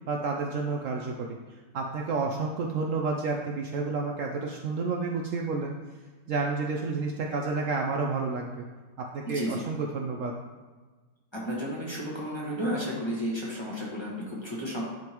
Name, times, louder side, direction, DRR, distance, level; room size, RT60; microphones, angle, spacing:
voice 1, 0.1-1.4 1.7-5.7 6.3-8.7 9.0-10.3, right 4 dB, 65° right, 1 dB, 0.8 m, -30 dB
voice 2, 9.2-9.7 11.3-14.8, equal, 20° left, -5 dB, 1.2 m, -32 dB
10.5 x 3.7 x 3.0 m, 1.3 s
omnidirectional pair, 1.6 m